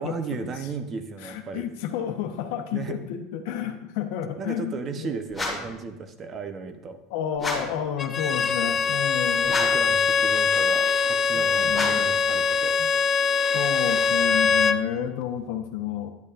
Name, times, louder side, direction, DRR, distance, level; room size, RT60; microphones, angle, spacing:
voice 1, 0.0-1.7 2.7-3.0 4.4-7.0 9.4-12.8, right 5 dB, 30° right, 8 dB, 0.8 m, -35 dB
voice 2, 1.2-5.1 7.1-9.6 11.3-12.1 12.8-12.9 13.5-16.1, left 9 dB, 75° left, 6 dB, 0.9 m, -31 dB
sound 1, 5.3-5.8 7.4-7.8 9.4-9.9 11.7-12.2, left 2 dB, 5° left, 1.9 m, -31 dB
Bowed string instrument, 8.0-14.8, left 5 dB, 25° left, 0.4 m, -22 dB
10.5 x 8.1 x 2.5 m, 0.90 s
supercardioid pair, 140°, 0 cm